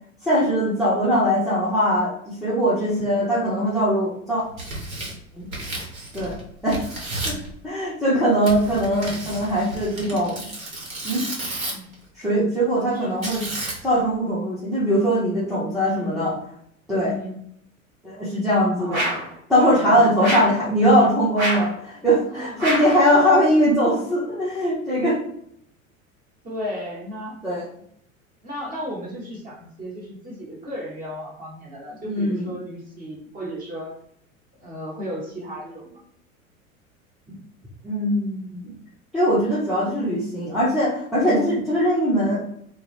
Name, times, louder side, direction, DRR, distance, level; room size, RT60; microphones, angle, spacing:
voice 1, 0.2-4.4 5.3-5.5 6.1-6.8 7.2-7.3 7.6-10.4 11.0-11.2 12.2-13.4 13.8-16.3 16.9-17.2 18.0-19.0 19.5-25.2 27.4-27.6 32.0-32.4 37.8-38.7 39.1-42.4, equal, ahead, -10 dB, 0.5 m, -21 dB
Tearing, 4.4-6.4 6.7-7.5 8.4-11.9 13.2-14.0, right 2 dB, 75° right, 1.0 m, -32 dB
voice 2, 12.9-13.2 15.9-16.3 17.0-17.4 18.8-19.2 19.7-20.4 22.3-22.7 22.9-23.0 26.4-27.4 28.4-33.9 34.6-36.0, equal, 20° right, -3 dB, 0.9 m, -34 dB
sound 1, 18.9-19.3 20.2-20.6 21.4-21.7 22.6-23.0, right 1 dB, 60° right, 1.4 m, -25 dB
2.2 x 2.1 x 3.1 m, 0.69 s
figure-of-eight pair, 80°, 41 cm